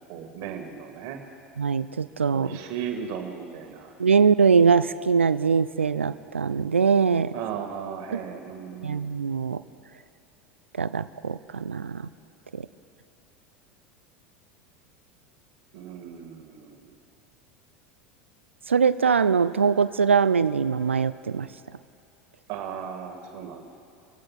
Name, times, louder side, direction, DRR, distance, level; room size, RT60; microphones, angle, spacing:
voice 1, 0.1-1.2 2.3-3.9 7.3-9.0 15.7-16.9 22.5-23.7, right 8 dB, 50° right, 4 dB, 2.0 m, -36 dB
voice 2, 1.6-2.5 4.0-7.3 8.8-9.6 10.8-12.0 12.5-12.6 18.7-21.5, right 6 dB, 85° right, 15 dB, 0.4 m, -22 dB
25.0 x 16.0 x 2.5 m, 2.8 s
figure-of-eight pair, 80°, 6 cm